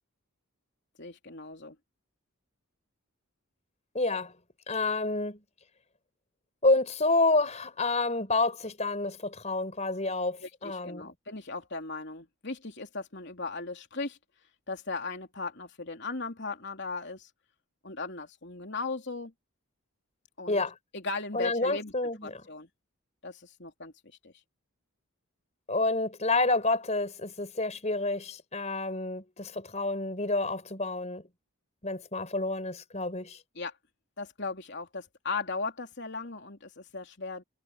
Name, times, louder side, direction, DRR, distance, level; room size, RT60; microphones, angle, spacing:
voice 1, 1.0-1.8 10.4-14.2 14.7-17.3 17.8-19.3 20.4-20.6 20.9-21.9 22.2-22.7 23.2-23.9 24.2-24.3 33.6-33.8 34.2-37.4, left 3 dB, 50° left, 3.4 m, -37 dB
voice 2, 3.9-4.3 4.7-5.4 6.6-11.1 20.5-20.7 21.3-22.4 25.7-31.2 31.8-33.4, left 2 dB, 30° left, 5.0 m, -29 dB
head